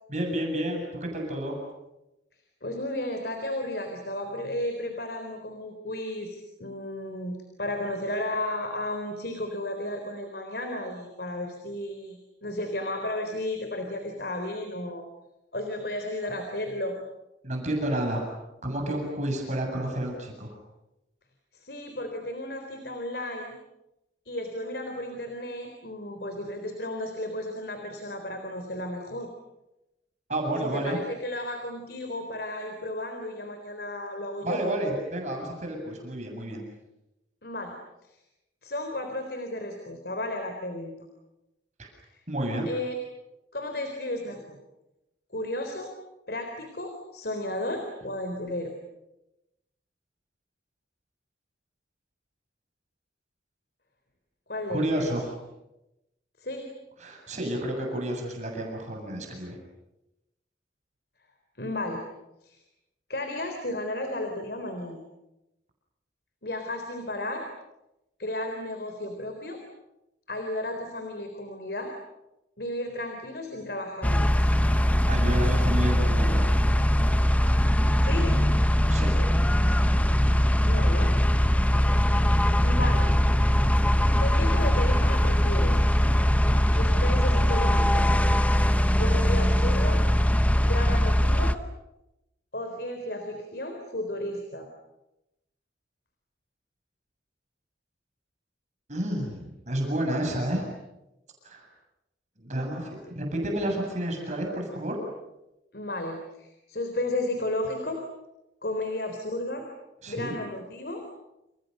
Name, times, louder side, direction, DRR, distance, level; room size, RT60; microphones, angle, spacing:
voice 1, 0.1-1.6 17.4-18.3 18.6-20.6 30.3-31.0 34.4-36.6 41.8-41.9 42.3-42.7 54.7-55.3 57.0-59.6 74.7-76.5 78.9-79.1 98.9-100.7 101.4-101.7 102.4-105.0 110.0-110.3, right 1 dB, 40° right, 1 dB, 7.7 m, -30 dB
voice 2, 2.6-15.0 15.5-17.0 21.5-23.6 24.3-29.3 30.6-34.6 37.4-37.7 38.0-38.2 38.6-40.9 42.1-42.2 42.7-43.0 43.5-44.6 45.3-45.9 46.3-48.7 54.5-55.1 56.4-56.7 61.6-62.0 62.4-62.6 63.1-65.0 66.4-67.4 68.2-69.6 70.3-71.9 72.6-74.5 78.0-78.4 80.6-81.1 82.6-83.1 84.2-85.8 86.7-88.1 89.0-90.0 90.6-91.6 92.5-94.7 105.7-108.0 108.6-109.7 110.1-111.0, left 1 dB, 60° left, 5 dB, 3.9 m, -33 dB
sound 1, 74.0-91.6, equal, 10° left, 1.0 m, -21 dB
29.5 x 29.5 x 6.7 m, 0.93 s
head